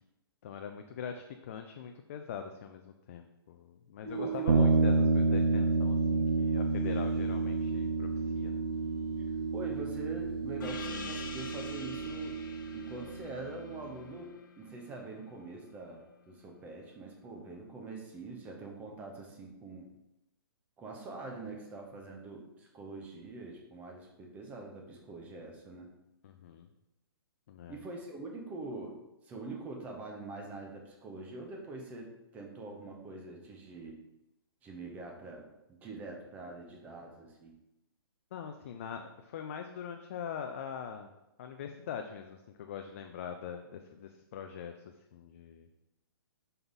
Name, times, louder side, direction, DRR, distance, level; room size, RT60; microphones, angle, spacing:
voice 1, 0.4-8.6 26.2-26.7 27.5-27.8 38.3-41.1 41.4-44.7 45.1-45.7, left 8 dB, 35° left, 5 dB, 0.3 m, -43 dB
sound 1, 4.0-13.2, right 9 dB, 5° left, 1.6 m, -37 dB
voice 2, 4.1-4.7 9.5-12.4 12.7-19.9 20.8-25.9 27.7-34.0 34.6-37.5, right 2 dB, 10° right, 1 dB, 0.6 m, -44 dB
sound 2, 4.5-14.0, right 2 dB, 65° right, 0.7 m, -31 dB
Gong, 10.6-15.7, left 5 dB, 50° left, 0.7 m, -46 dB
5.5 x 4.5 x 4.0 m, 0.93 s
hypercardioid pair, 165°, 13 cm